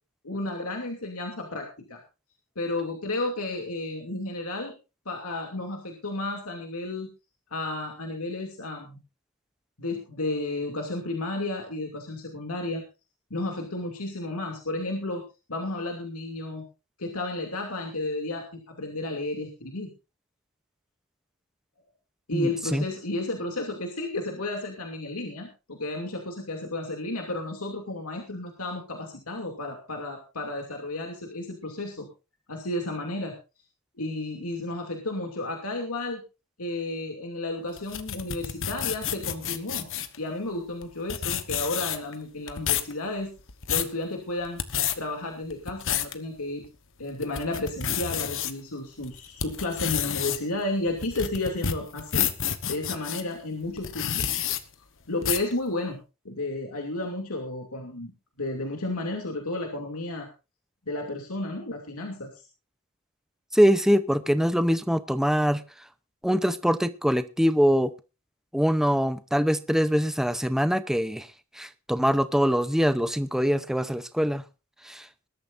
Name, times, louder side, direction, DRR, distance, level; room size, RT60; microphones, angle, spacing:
voice 1, 0.2-2.0 2.6-4.7 5.1-7.1 7.5-9.0 9.8-12.8 13.3-15.2 15.5-16.6 17.0-19.9 22.3-32.1 32.5-33.3 34.0-36.2 36.6-39.9 40.2-43.3 43.7-44.6 44.9-46.6 47.0-52.3 52.6-54.4 55.1-56.0 56.2-58.1 58.4-60.3 60.9-62.4, left 2 dB, 80° left, 2 dB, 2.7 m, -32 dB
voice 2, 22.3-22.8 63.5-65.6 66.2-67.9 68.5-71.3 71.6-74.4 74.8-75.1, equal, ahead, 12 dB, 0.8 m, -23 dB
sound 1, 37.8-40.2 40.8-40.9 41.1-42.1 42.5-42.9 43.4-43.9 44.5-45.0 45.5-46.1 46.6-46.7 47.2-48.5 49.0-53.2 53.8-54.6 55.2-55.5, left 9 dB, 65° left, 1.3 m, -29 dB
21.0 x 13.0 x 2.6 m, 0.31 s
head